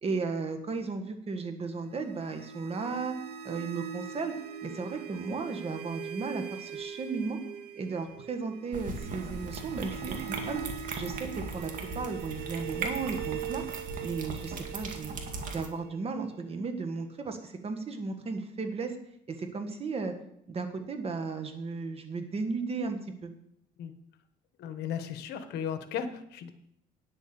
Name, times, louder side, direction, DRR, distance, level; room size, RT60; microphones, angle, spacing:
voice 1, 0.0-3.1 3.4-4.3 4.6-7.4 7.8-10.6 10.9-13.6 14.0-15.2 15.5-19.0 19.3-20.1 20.5-23.3, right 4 dB, 35° right, 6 dB, 1.7 m, -35 dB
sound 1, 1.9-16.8, right 9 dB, 70° right, 1.5 m, -42 dB
sound 2, 8.7-15.7, right 3 dB, 50° right, 2.0 m, -38 dB
voice 2, 24.6-26.5, left 8 dB, 75° left, 9 dB, 1.2 m, -36 dB
9.9 x 7.0 x 7.0 m, 0.74 s
cardioid pair, 110°, 17 cm